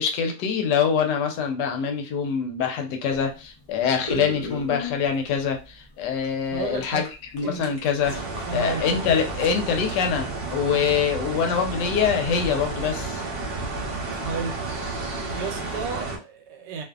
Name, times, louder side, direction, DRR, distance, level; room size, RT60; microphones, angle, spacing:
voice 1, 0.0-7.1 7.3-8.1 8.5-13.3, left 7 dB, 80° left, 4 dB, 1.2 m, -24 dB
sound 1, 3.1-10.3, left 2 dB, 60° left, 0.3 m, -39 dB
voice 2, 6.5-7.0 7.4-7.7 8.4-8.9 14.2-14.9 15.3-16.8, right 5 dB, 80° right, 3 dB, 1.2 m, -32 dB
sound 2, 8.0-16.2, right 3 dB, 45° right, 0.9 m, -31 dB
2.7 x 2.5 x 2.3 m, 0.31 s
omnidirectional pair, 1.9 m